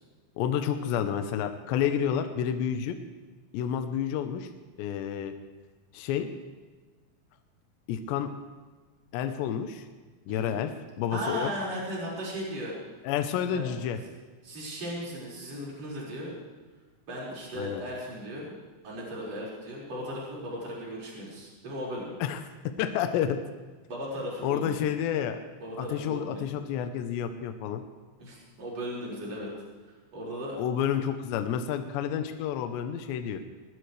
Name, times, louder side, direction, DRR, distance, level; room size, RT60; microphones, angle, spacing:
voice 1, 0.4-3.0 3.5-4.5 4.8-5.4 5.9-6.3 7.9-8.3 9.1-9.9 10.3-11.5 13.0-14.0 17.5-17.8 22.2-23.4 24.4-25.4 25.8-27.8 30.6-33.4, left 9 dB, 80° left, 7 dB, 3.0 m, -30 dB
voice 2, 10.3-10.6 11.1-12.7 13.5-13.7 14.4-16.3 17.1-18.5 18.8-22.1 23.9-24.8 25.6-26.4 28.2-29.5 30.1-30.6, equal, 35° right, -6 dB, 6.1 m, -36 dB
20.0 x 20.0 x 3.4 m, 1.3 s
omnidirectional pair, 5.3 m